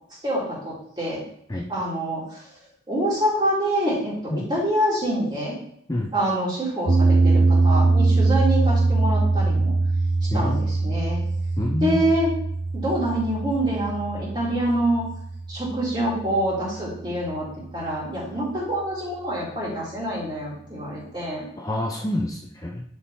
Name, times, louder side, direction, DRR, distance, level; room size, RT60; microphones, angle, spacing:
voice 1, 0.2-1.2 1.7-2.4 2.9-5.5 6.1-9.7 10.3-11.2 11.8-12.3 12.7-15.0 15.5-17.5 17.7-21.5, right 1 dB, 20° right, -7 dB, 3.6 m, -26 dB
sound 1, 6.9-17.1, right 3 dB, 55° right, 0.8 m, -22 dB
voice 2, 10.3-10.6 11.6-12.0 21.6-22.8, left 1 dB, 20° left, 0 dB, 0.6 m, -27 dB
10.5 x 4.6 x 4.3 m, 0.69 s
head